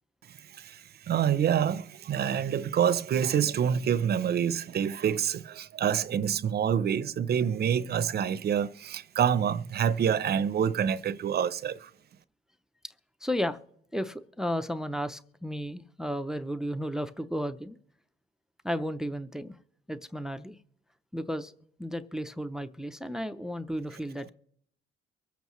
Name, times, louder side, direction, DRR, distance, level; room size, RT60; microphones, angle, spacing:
voice 1, 1.1-11.9, right 8 dB, 55° right, 0.6 m, -27 dB
voice 2, 13.2-13.6 13.9-17.8 18.6-19.6 19.9-20.6 21.1-21.5 21.8-24.3, equal, 5° right, 0.5 m, -33 dB
24.0 x 8.1 x 3.1 m
cardioid pair, 90°, 20 cm